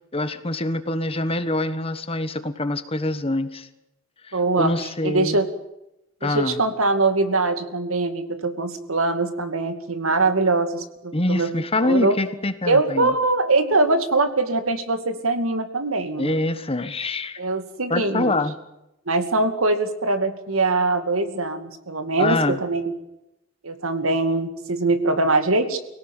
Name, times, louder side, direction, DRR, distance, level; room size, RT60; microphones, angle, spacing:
voice 1, 0.1-3.7 4.3-5.4 6.2-6.6 11.1-13.1 16.2-17.4 17.9-18.5 22.2-22.6, left 2 dB, 25° left, 11 dB, 1.3 m, -25 dB
voice 2, 4.3-5.5 6.2-11.5 11.8-12.1 12.7-16.4 17.4-18.3 19.1-22.9 23.6-25.8, right 2 dB, 75° right, 8 dB, 2.4 m, -22 dB
24.5 x 17.5 x 9.0 m, 0.89 s
head